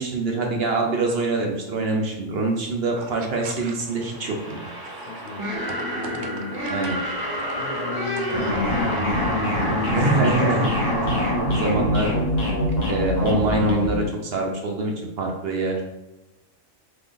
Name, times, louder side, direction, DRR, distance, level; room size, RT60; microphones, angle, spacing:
voice 1, 0.0-4.6 6.7-7.0 9.9-10.7 11.5-12.2 12.9-15.8, right 2 dB, 55° right, 1 dB, 0.8 m, -24 dB
sound 1, 2.4-4.1 4.5-7.1 7.4-7.6 7.9-8.5, right 4 dB, 85° right, 0.4 m, -41 dB
sound 2, 3.8-12.7, equal, 25° right, 0.5 m, -29 dB
voice 2, 5.0-5.5 5.9-6.7 7.6-10.1, left 6 dB, 75° left, 1 dB, 0.4 m, -37 dB
sound 3, 8.3-14.0, left 1 dB, 35° left, 1.0 m, -24 dB
3.8 x 3.4 x 3.7 m, 0.98 s
omnidirectional pair, 1.4 m